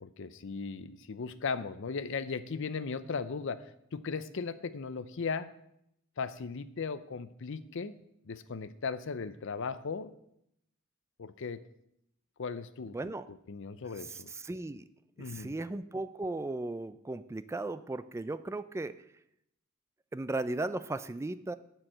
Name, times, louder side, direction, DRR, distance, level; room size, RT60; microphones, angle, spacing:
voice 1, 0.0-5.5 6.2-7.9 8.2-10.1 11.2-11.6 12.4-13.0 13.5-14.3 15.2-15.5, left 5 dB, 65° left, 14 dB, 0.6 m, -37 dB
voice 2, 12.9-13.2 14.1-14.8 15.2-18.9 20.1-21.6, right 2 dB, 15° right, 13 dB, 0.3 m, -36 dB
9.8 x 4.6 x 7.7 m, 0.77 s
head